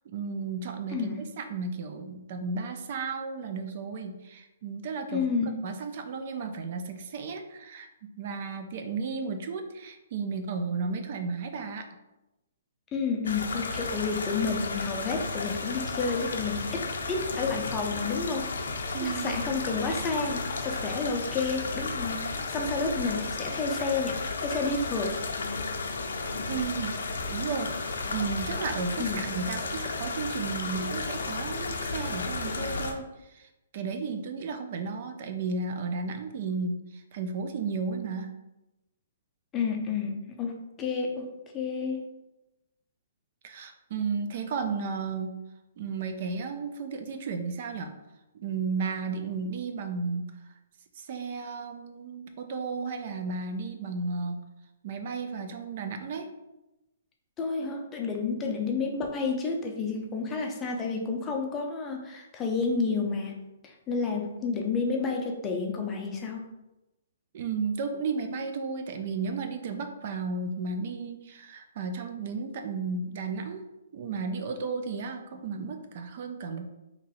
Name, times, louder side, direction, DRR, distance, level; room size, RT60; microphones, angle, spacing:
voice 1, 0.1-5.3 5.6-11.9 18.9-19.7 26.5-26.9 27.3-33.5 33.7-38.3 43.4-45.3 45.8-47.9 48.3-50.3 51.0-54.4 54.8-56.3 67.3-73.6 73.9-76.7, right 4 dB, 45° right, 6 dB, 0.4 m, -33 dB
voice 2, 5.1-5.5 12.9-18.5 19.0-25.2 29.0-29.3 39.5-42.1 57.4-63.4 63.6-66.4, left 4 dB, 15° left, 1 dB, 0.5 m, -30 dB
sound 1, 13.2-32.9, left 3 dB, 80° left, 0.5 m, -33 dB
2.9 x 2.6 x 4.0 m, 0.97 s
hypercardioid pair, 155°, 0 cm